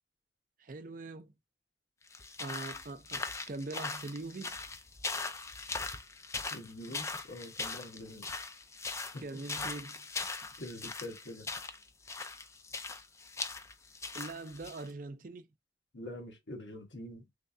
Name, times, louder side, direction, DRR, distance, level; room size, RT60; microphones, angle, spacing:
voice 1, 0.6-1.3 2.4-4.6 9.2-10.1 14.1-15.5, right 2 dB, 50° right, 0.5 m, -42 dB
sound 1, 2.1-14.9, left 3 dB, 15° left, 0.4 m, -40 dB
voice 2, 6.5-8.4 9.1-9.2 10.6-11.5 15.9-17.3, left 1 dB, 85° left, 1.3 m, -45 dB
3.4 x 3.2 x 2.7 m
head